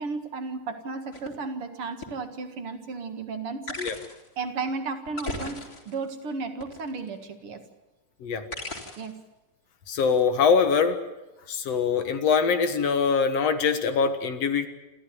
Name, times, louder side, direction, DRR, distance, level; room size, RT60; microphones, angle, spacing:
voice 1, 0.0-3.8 4.4-7.6 9.0-9.2, right 4 dB, 50° right, 8 dB, 2.5 m, -34 dB
sound 1, 1.1-1.3 2.0-2.1 3.7-4.3 5.1-6.1 6.6-7.2 8.5-9.2 10.0-10.2, left 2 dB, 30° left, 3.7 m, -36 dB
voice 2, 9.9-11.0 11.5-14.7, left 5 dB, 60° left, 9 dB, 2.4 m, -23 dB
28.0 x 14.0 x 9.6 m, 1.0 s
omnidirectional pair, 3.5 m